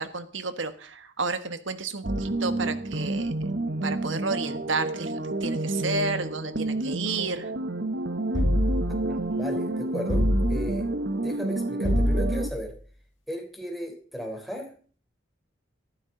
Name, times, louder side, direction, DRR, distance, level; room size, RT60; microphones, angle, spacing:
voice 1, 0.0-3.5 3.8-7.5, right 3 dB, 90° right, 10 dB, 1.5 m, -31 dB
sound 1, 2.0-12.5, right 2 dB, 60° right, 1.0 m, -29 dB
sound 2, 8.3-9.1 10.1-10.8 11.8-12.6, left 1 dB, 85° left, 1.9 m, -25 dB
voice 2, 9.1-10.9 11.2-12.8 13.3-14.7, equal, ahead, 1 dB, 3.7 m, -36 dB
19.0 x 14.5 x 3.9 m, 0.42 s
head